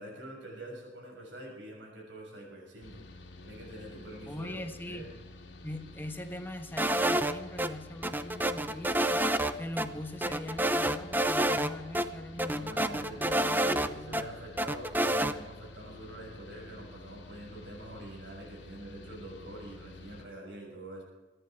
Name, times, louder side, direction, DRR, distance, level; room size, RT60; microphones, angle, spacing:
voice 1, 0.0-3.0 3.4-5.1 12.3-21.0, right 1 dB, 75° right, -1 dB, 6.8 m, -46 dB
Mechanical fan, 2.8-20.3, left 2 dB, 80° left, 2.4 m, -50 dB
voice 2, 4.2-5.1 5.6-9.3 9.6-14.3, left 1 dB, 10° left, 6 dB, 1.3 m, -42 dB
sound 1, 6.8-7.7 8.0-9.5 9.8-9.9 10.2-11.7 11.9-12.0 12.4-14.2 14.6-15.3, right 1 dB, 10° right, 0.6 m, -28 dB
24.5 x 10.5 x 4.7 m, 1.2 s
head